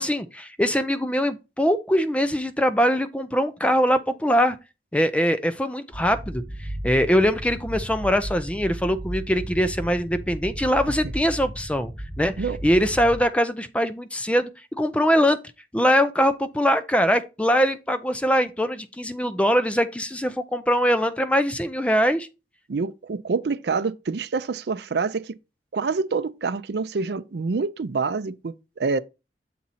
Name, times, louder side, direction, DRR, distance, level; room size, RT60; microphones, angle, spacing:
voice 1, 0.0-4.6 4.9-11.9 12.2-12.3 12.6-15.4 15.7-22.3, equal, 5° left, 0.5 m, -22 dB
sound 1, 5.9-13.2, right 1 dB, 20° right, 1.4 m, -35 dB
voice 2, 22.7-25.4 25.7-29.0, right 4 dB, 65° right, 0.5 m, -26 dB
7.4 x 4.1 x 4.1 m
head